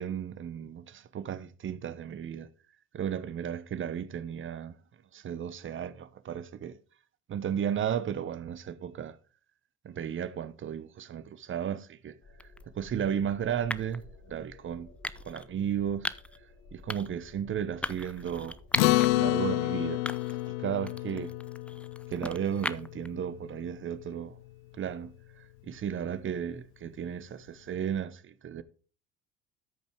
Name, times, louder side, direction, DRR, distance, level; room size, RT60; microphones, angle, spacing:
voice 1, 0.0-2.5 2.9-4.8 5.1-6.8 7.3-9.2 9.8-12.5 12.7-14.0 14.3-14.9 15.2-16.1 16.7-18.6 18.9-21.3 22.1-24.4 24.7-28.6, right 8 dB, 35° right, 1.0 m, -34 dB
sound 1, 12.2-19.4, left 2 dB, 45° left, 3.9 m, -53 dB
sound 2, 12.4-12.6 13.7-14.0 15.0-15.5 16.0-16.4 16.9-17.2 17.8-19.1 19.5-19.6 20.1-20.5 20.9-23.1, left 1 dB, 5° left, 0.5 m, -37 dB
Acoustic guitar, 18.8-23.5, left 19 dB, 75° left, 0.5 m, -29 dB
13.5 x 5.4 x 4.6 m
hypercardioid pair, 75°, 34 cm